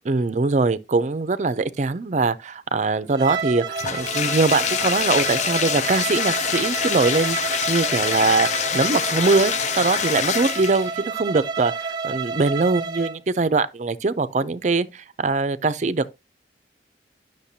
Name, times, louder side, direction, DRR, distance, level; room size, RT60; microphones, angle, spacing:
voice 1, 0.0-16.2, right 3 dB, 40° right, 0.4 m, -22 dB
Wind instrument woodwind instrument, 2.9-6.5 6.9-10.5, equal, ahead, 3.4 m, -43 dB
Bowed string instrument, 3.1-13.2, right 5 dB, 25° right, 1.0 m, -30 dB
Bathtub (filling or washing), 3.7-11.0, left 9 dB, 40° left, 0.3 m, -25 dB
9.9 x 6.5 x 2.7 m
head